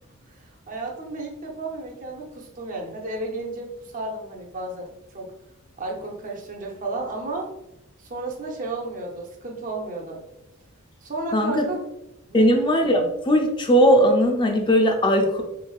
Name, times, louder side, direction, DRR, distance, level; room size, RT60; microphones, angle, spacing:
voice 1, 0.3-5.3 5.8-7.5 8.0-10.2 11.0-11.8 12.3-12.5, right 2 dB, 40° right, 0 dB, 0.6 m, -33 dB
voice 2, 11.3-11.7 12.3-15.4, equal, 20° left, 3 dB, 0.4 m, -19 dB
3.3 x 3.2 x 2.3 m, 0.89 s
head